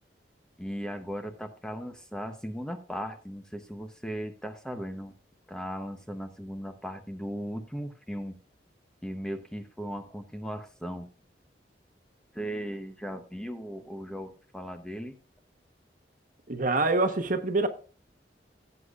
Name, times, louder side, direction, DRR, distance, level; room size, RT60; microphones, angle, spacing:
voice 1, 0.6-5.1 5.5-8.4 9.0-11.1 12.3-15.2, equal, 5° left, 0.9 m, -37 dB
voice 2, 16.5-17.7, right 3 dB, 50° right, 1.1 m, -25 dB
16.5 x 8.2 x 2.4 m
head